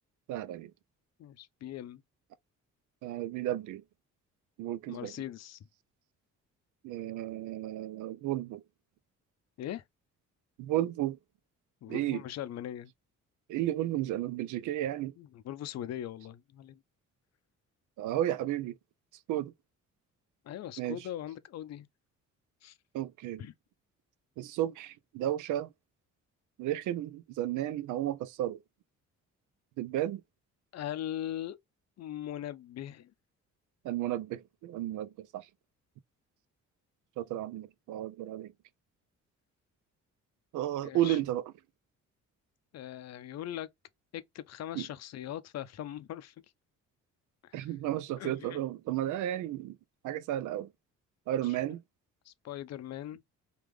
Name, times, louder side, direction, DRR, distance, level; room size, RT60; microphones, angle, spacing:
voice 1, 0.3-0.7 3.0-3.8 4.6-5.1 6.8-8.6 10.6-11.2 11.9-12.2 13.5-15.1 18.0-18.8 19.3-19.5 20.8-21.0 22.9-23.4 24.4-25.7 26.6-28.6 29.8-30.2 33.8-35.5 37.2-38.5 40.5-41.4 44.8-44.9 47.5-49.8 50.0-50.7 51.3-51.8, right 13 dB, 80° right, 0.5 m, -33 dB
voice 2, 1.2-2.0 4.9-5.6 9.6-9.8 11.8-12.9 15.2-16.8 20.5-21.9 22.6-22.8 23.4-23.5 30.7-31.6 32.0-33.1 40.8-41.2 42.7-43.7 44.1-46.3 47.4-47.7 48.2-48.6 51.4-51.6 52.3-53.2, left 11 dB, 60° left, 0.5 m, -40 dB
3.4 x 2.4 x 3.1 m
cardioid pair, 90°, 30 cm